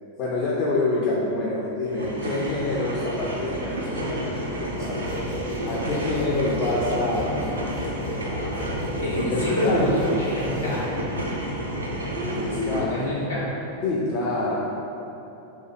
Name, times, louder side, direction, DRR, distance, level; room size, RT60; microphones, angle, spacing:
voice 1, 0.2-5.0 5.6-7.4 8.3-8.8 9.1-9.9 12.3-13.0 13.8-14.6, left 2 dB, 35° left, -6 dB, 0.4 m, -27 dB
sound 1, 1.8-12.8, equal, 75° right, 0.4 m, -30 dB
sound 2, 4.8-11.3, left 3 dB, 50° left, 0.8 m, -35 dB
voice 2, 9.0-10.9 12.7-13.5, equal, 80° left, -8 dB, 0.9 m, -26 dB
2.7 x 2.6 x 3.9 m, 2.9 s
figure-of-eight pair, 90°, 0 cm